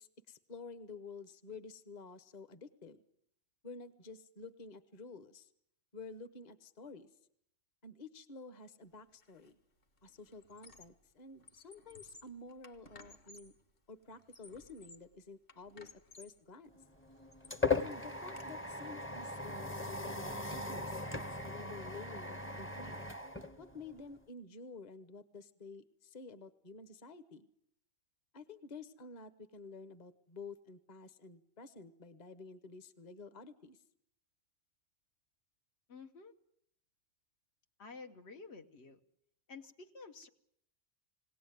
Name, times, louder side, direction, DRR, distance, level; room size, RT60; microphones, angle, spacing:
voice 1, 0.0-3.0 3.6-5.5 5.9-7.1 7.8-9.6 10.0-13.5 13.9-16.7 17.7-23.0 23.6-27.5 28.3-33.8, left 4 dB, 40° left, 13 dB, 1.1 m, -51 dB
Squeak, 9.2-9.5 9.8-11.1 11.4-13.6 14.1-15.1 15.5-16.4 16.9-18.5, left 2 dB, 55° left, 1.7 m, -58 dB
sound 1, 16.8-24.2, left 4 dB, 15° left, 0.7 m, -39 dB
voice 2, 35.9-36.3 37.8-39.0 39.5-40.3, left 4 dB, 75° left, 5 dB, 1.4 m, -51 dB
21.0 x 17.5 x 9.3 m, 0.72 s
omnidirectional pair, 1.1 m